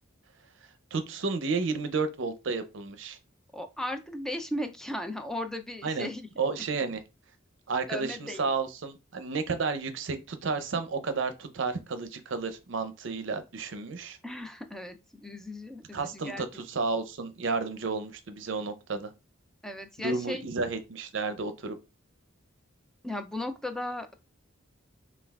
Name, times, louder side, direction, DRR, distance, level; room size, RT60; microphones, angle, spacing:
voice 1, 0.9-3.2 5.8-6.1 6.4-7.0 7.7-14.2 15.9-19.1 20.0-21.8, right 4 dB, 65° right, 0.6 m, -32 dB
voice 2, 3.5-6.3 6.5-6.6 7.9-8.5 14.2-15.0 15.2-16.4 19.6-20.4 23.0-24.1, left 1 dB, 5° left, 0.4 m, -36 dB
5.6 x 2.3 x 2.3 m
head